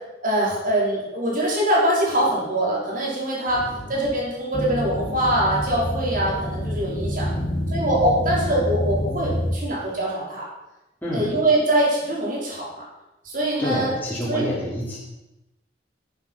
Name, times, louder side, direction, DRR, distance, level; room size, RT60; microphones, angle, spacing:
voice 1, 0.2-7.3 7.7-10.5 11.1-12.8 13.2-13.9 14.3-14.4, right 1 dB, 45° right, -4 dB, 4.7 m, -23 dB
voice 2, 3.5-3.9 7.0-7.5 11.0-11.3 13.6-15.0, equal, 10° left, -7 dB, 3.5 m, -29 dB
sound 1, 4.5-9.6, equal, 25° left, 1.9 m, -27 dB
12.0 x 9.7 x 5.6 m, 0.95 s
head